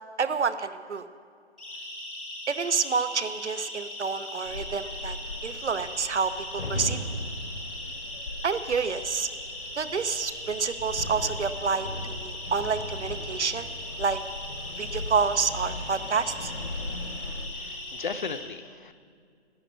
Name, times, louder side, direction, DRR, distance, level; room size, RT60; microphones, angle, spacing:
voice 1, 0.2-1.0 2.5-7.0 8.4-9.3 9.8-13.7 14.0-14.2 14.8-16.5, right 5 dB, 85° right, 12 dB, 1.0 m, -28 dB
Siren, 1.6-18.3, left 1 dB, ahead, 0.7 m, -39 dB
sound 1, 4.5-17.5, left 1 dB, 85° left, 2.1 m, -38 dB
voice 2, 17.5-18.9, left 5 dB, 45° left, 11 dB, 0.7 m, -36 dB
12.5 x 9.0 x 9.4 m, 2.2 s
hypercardioid pair, 165°, 34 cm